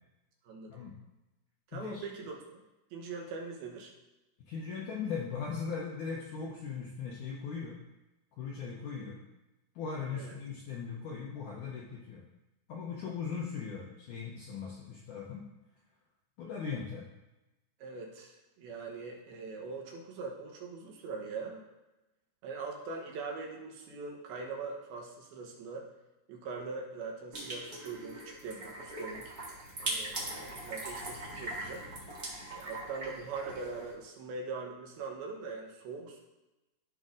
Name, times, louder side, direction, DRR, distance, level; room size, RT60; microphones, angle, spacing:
voice 1, 0.4-0.9 1.7-2.6 2.9-3.9 10.1-10.4 17.8-21.6 22.4-25.9 26.3-29.3 29.8-31.9 32.5-36.2, right 4 dB, 75° right, 0 dB, 2.8 m, -42 dB
voice 2, 1.7-2.0 4.4-7.8 8.3-9.2 9.7-12.2 12.7-15.4 16.4-17.1, left 6 dB, 80° left, -3 dB, 1.8 m, -39 dB
sound 1, 27.3-33.9, right 1 dB, 50° right, 1.1 m, -41 dB
13.5 x 5.4 x 2.5 m, 1.0 s
omnidirectional pair, 4.6 m